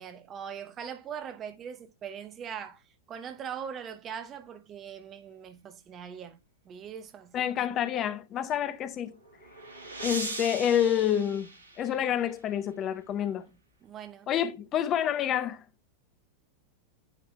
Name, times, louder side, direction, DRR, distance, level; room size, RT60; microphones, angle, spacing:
voice 1, 0.0-2.8 3.1-6.4 6.6-7.6 13.2-13.4 13.8-14.3, right 8 dB, 30° right, 0.9 m, -41 dB
voice 2, 7.3-9.1 10.0-11.5 11.8-13.5 14.3-15.6, left 9 dB, 30° left, 0.6 m, -28 dB
sound 1, 8.9-12.3, right 2 dB, 90° left, 1.9 m, -40 dB
9.8 x 3.3 x 3.3 m
figure-of-eight pair, 90°, 0 cm